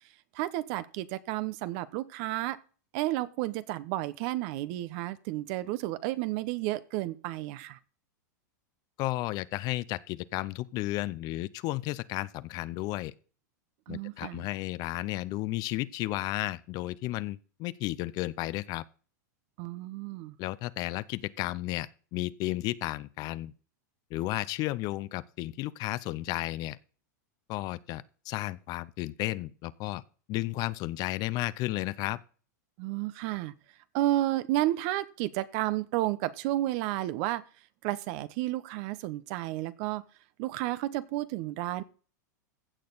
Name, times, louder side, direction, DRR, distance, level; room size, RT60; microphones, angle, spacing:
voice 1, 0.3-2.6 2.9-7.8 13.9-14.5 19.6-20.4 32.8-33.5 33.9-37.4 37.8-40.0 40.4-41.8, right 16 dB, 50° right, 0.9 m, -31 dB
voice 2, 9.0-13.1 13.9-18.8 20.4-23.5 24.1-26.8 27.5-30.0 30.3-32.2, left 18 dB, 40° left, 0.6 m, -33 dB
15.5 x 6.7 x 4.0 m
hypercardioid pair, 125°, 10 cm